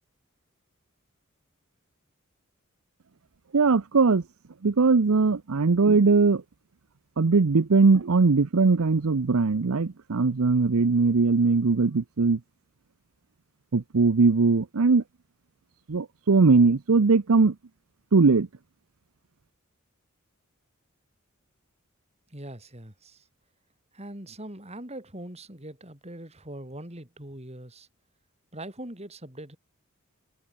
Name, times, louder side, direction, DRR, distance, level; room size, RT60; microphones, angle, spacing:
voice 1, 3.5-4.2 4.6-6.4 7.2-12.4 13.7-15.0 15.9-17.5 18.1-18.5, right 4 dB, 75° right, 0.7 m, -20 dB
voice 2, 22.3-23.3 23.9-27.9 28.5-29.6, right 1 dB, 30° right, 5.0 m, -41 dB
head